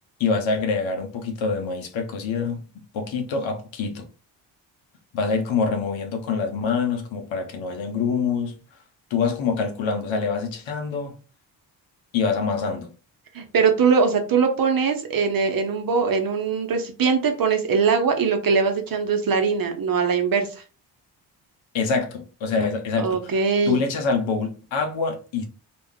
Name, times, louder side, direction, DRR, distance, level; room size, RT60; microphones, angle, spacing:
voice 1, 0.2-2.6 2.9-4.1 5.1-8.5 9.1-11.1 12.1-12.9 21.7-23.3 23.7-25.4, left 5 dB, 70° left, 0.8 m, -25 dB
voice 2, 13.3-20.5 23.0-23.8, right 5 dB, 45° right, 0.8 m, -21 dB
2.4 x 2.3 x 3.5 m
supercardioid pair, 50°, 48 cm